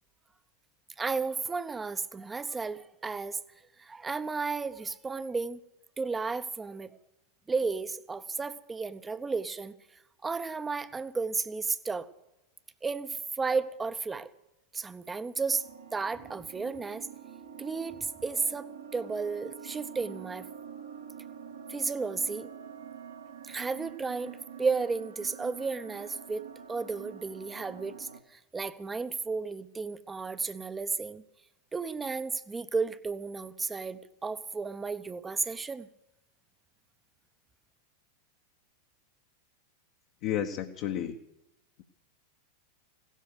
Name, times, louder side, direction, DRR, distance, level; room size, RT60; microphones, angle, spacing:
voice 1, 1.0-3.4 3.8-5.6 6.0-6.9 7.5-9.7 10.2-12.1 12.8-14.3 14.7-15.7 15.9-17.1 17.6-20.5 21.7-22.5 23.4-31.2 31.7-35.9, right 4 dB, 15° right, 14 dB, 0.8 m, -33 dB
sound 1, 15.5-28.2, right 7 dB, 75° right, 1.7 m, -46 dB
voice 2, 40.2-41.2, left 10 dB, 45° left, 3 dB, 1.0 m, -31 dB
17.0 x 13.0 x 6.6 m, 0.90 s
figure-of-eight pair, 90°, 0 cm